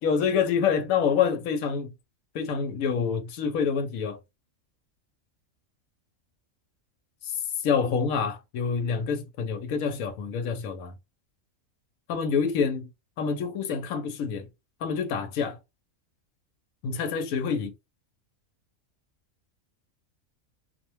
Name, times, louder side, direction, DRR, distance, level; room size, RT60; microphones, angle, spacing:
voice 1, 0.0-1.9 2.3-4.2 7.2-7.4 7.6-10.9 12.1-12.9 13.2-14.5 14.8-15.6 16.8-17.7, left 6 dB, 85° left, 1.1 m, -27 dB
2.4 x 2.1 x 2.9 m
omnidirectional pair, 1.4 m